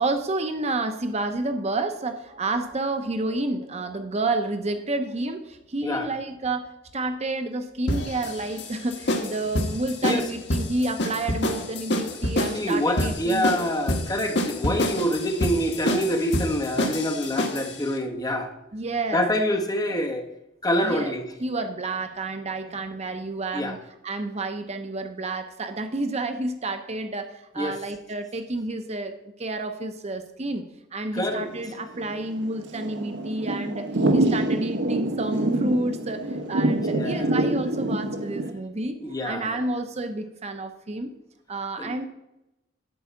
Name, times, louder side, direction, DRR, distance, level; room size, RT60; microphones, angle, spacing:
voice 1, 0.0-13.5 18.7-19.2 20.8-21.1 21.4-23.8 24.0-30.6 30.9-39.0 39.2-41.1 41.5-42.0, right 2 dB, 35° right, 7 dB, 0.7 m, -30 dB
sound 1, 7.9-17.8, left 1 dB, 65° left, 1.5 m, -27 dB
voice 2, 12.5-18.5 19.1-20.3 20.6-21.3 23.5-23.8 27.6-27.8 31.1-31.5 36.9-37.4 39.0-39.6 41.8-41.9, equal, 20° left, 3 dB, 1.3 m, -26 dB
Thunder / Rain, 31.5-38.5, right 1 dB, 65° right, 1.2 m, -26 dB
11.0 x 4.8 x 8.3 m, 0.90 s
head